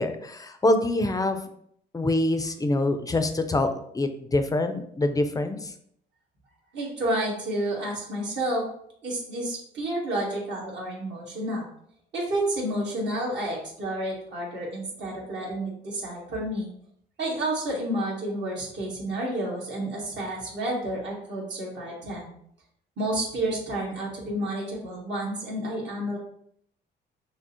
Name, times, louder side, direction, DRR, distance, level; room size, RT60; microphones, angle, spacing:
voice 1, 0.0-1.4 1.9-5.7, left 2 dB, 20° left, 7 dB, 0.4 m, -25 dB
voice 2, 6.7-8.7 9.0-11.7 12.1-16.7 17.2-22.3 23.0-26.2, right 1 dB, 65° right, -3 dB, 1.6 m, -30 dB
6.0 x 2.0 x 2.8 m, 0.68 s
cardioid pair, 90°, 20 cm